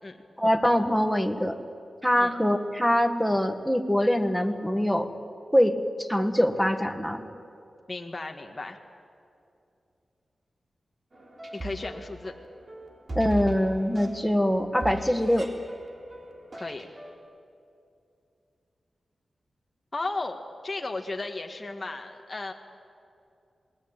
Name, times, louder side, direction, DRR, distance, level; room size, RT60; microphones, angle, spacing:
voice 1, 0.4-1.6 2.0-5.1 5.5-7.2 13.1-15.5, equal, ahead, 6 dB, 1.7 m, -24 dB
voice 2, 7.9-8.8 11.5-12.3 16.5-16.9 19.9-22.5, left 2 dB, 30° left, 3 dB, 1.7 m, -34 dB
sound 1, 11.1-17.2, right 1 dB, 45° right, 3.6 m, -40 dB
27.5 x 20.0 x 8.9 m, 2.6 s
wide cardioid pair, 90°, 0 cm